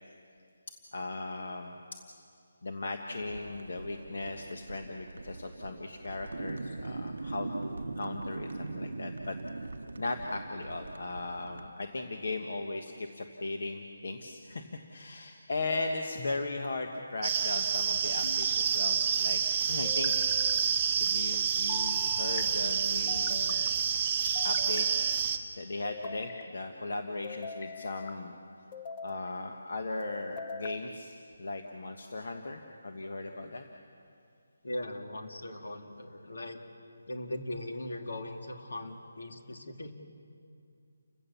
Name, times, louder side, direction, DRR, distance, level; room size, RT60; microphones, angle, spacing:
voice 1, 0.9-1.7 2.6-9.4 10.0-19.4 19.7-20.3 21.0-23.7 24.4-28.4 29.0-33.6, left 2 dB, 60° left, 4 dB, 1.4 m, -37 dB
sound 1, 3.2-11.7, right 3 dB, 90° right, 0.9 m, -41 dB
sound 2, 16.2-16.9 18.2-19.0 19.8-20.6 21.7-22.5 23.1-23.7 24.3-25.2 25.8-26.5 27.2-28.2 28.7-29.3 30.0-30.8, left 4 dB, 20° left, 0.7 m, -43 dB
sound 3, 17.2-25.4, right 7 dB, 20° right, 0.9 m, -28 dB
voice 2, 34.6-36.6 37.1-39.9, left 1 dB, 75° left, 4 dB, 2.7 m, -39 dB
30.0 x 16.5 x 7.2 m, 2.4 s
hypercardioid pair, 175°, 0 cm